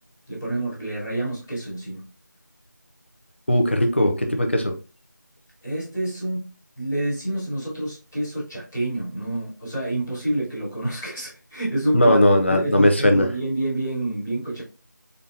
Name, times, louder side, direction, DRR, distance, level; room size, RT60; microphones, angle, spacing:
voice 1, 0.3-2.0 5.6-6.5 6.8-12.2 12.5-14.6, right 1 dB, 5° left, -15 dB, 0.9 m, -28 dB
voice 2, 3.5-4.7 11.9-13.3, left 1 dB, 35° left, 4 dB, 0.6 m, -18 dB
3.9 x 3.4 x 2.6 m, 0.33 s
figure-of-eight pair, 175°, 10 cm